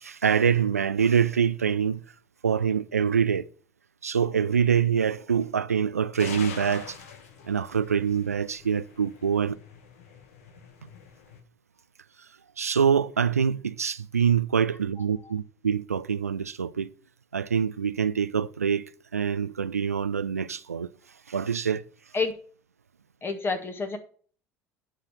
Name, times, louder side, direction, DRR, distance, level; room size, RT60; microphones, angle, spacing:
voice 1, 0.0-2.0 2.4-3.5 4.0-7.0 7.4-9.6 10.8-10.9 12.6-16.9 17.3-20.9 21.3-21.8, right 7 dB, 85° right, 0.3 m, -25 dB
sound 1, 6.2-11.4, left 6 dB, 70° left, 1.2 m, -44 dB
voice 2, 23.2-24.0, left 4 dB, 30° left, 1.7 m, -28 dB
9.8 x 4.8 x 5.6 m
figure-of-eight pair, 65°, 8 cm